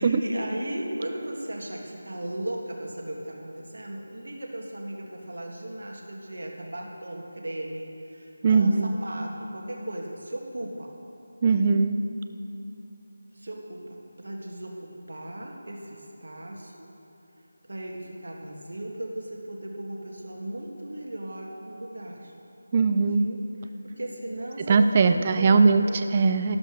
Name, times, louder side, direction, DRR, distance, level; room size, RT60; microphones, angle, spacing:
voice 1, 0.0-10.9 13.3-16.9 17.7-22.3 23.0-26.0, right 1 dB, 75° right, 0 dB, 1.8 m, -37 dB
voice 2, 8.4-8.9 11.4-12.0 22.7-23.2 24.7-25.8 26.1-26.6, right 4 dB, 25° right, 9 dB, 0.5 m, -20 dB
12.5 x 12.0 x 5.0 m, 2.9 s
figure-of-eight pair, 170°, 0 cm